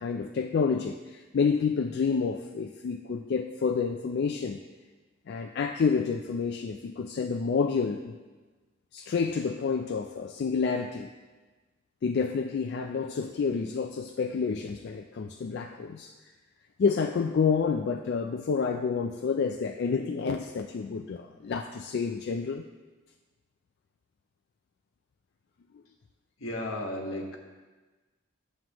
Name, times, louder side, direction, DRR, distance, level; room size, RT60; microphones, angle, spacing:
voice 1, 0.0-4.6 5.3-8.1 8.9-11.1 12.0-16.1 16.8-22.6, left 5 dB, 55° left, 4 dB, 0.3 m, -29 dB
voice 2, 26.4-27.4, left 1 dB, 80° left, 1 dB, 1.3 m, -34 dB
11.0 x 7.6 x 2.9 m, 1.3 s
head